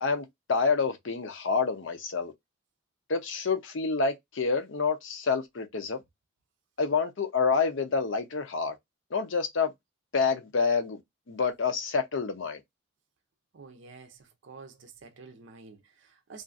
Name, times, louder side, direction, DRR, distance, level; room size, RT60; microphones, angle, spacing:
voice 1, 0.0-2.3 3.1-6.0 6.8-8.7 9.1-9.7 10.1-11.0 11.3-12.6, left 5 dB, 60° left, 0.6 m, -28 dB
voice 2, 13.5-16.4, right 4 dB, 60° right, 0.5 m, -49 dB
2.5 x 2.4 x 2.4 m
head